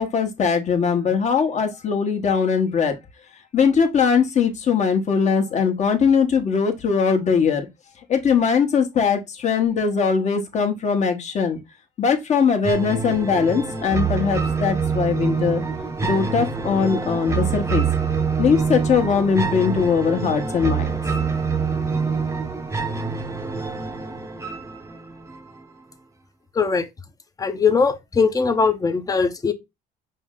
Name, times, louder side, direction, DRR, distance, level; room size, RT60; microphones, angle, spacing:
voice 1, 0.0-2.9 3.5-7.7 8.1-11.6 12.0-15.6 16.0-17.9 18.4-21.0, left 6 dB, 45° left, 1.1 m, -20 dB
sound 1, 12.6-25.6, right 5 dB, 15° right, 0.7 m, -25 dB
voice 2, 26.6-26.9 27.4-29.5, left 5 dB, 20° left, 0.7 m, -20 dB
5.3 x 2.1 x 3.6 m
cardioid pair, 110°, 17 cm